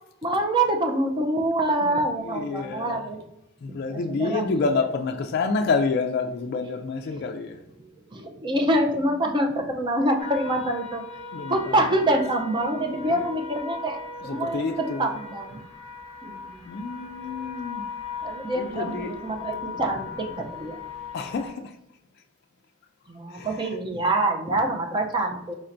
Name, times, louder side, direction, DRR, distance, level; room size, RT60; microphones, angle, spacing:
voice 1, 0.2-3.2 3.7-4.4 8.1-11.0 11.5-15.6 16.2-16.8 18.2-20.8 23.1-25.5, right 1 dB, 25° right, 3 dB, 0.5 m, -26 dB
voice 2, 1.8-3.0 3.6-7.6 11.3-12.1 13.0-13.3 14.2-15.2 16.7-17.8 18.5-19.2 21.1-21.7 23.3-23.8, left 4 dB, 50° left, 4 dB, 0.3 m, -29 dB
sound 1, 10.2-21.5, left 5 dB, 30° left, 0.9 m, -39 dB
4.4 x 4.2 x 2.5 m, 0.83 s
head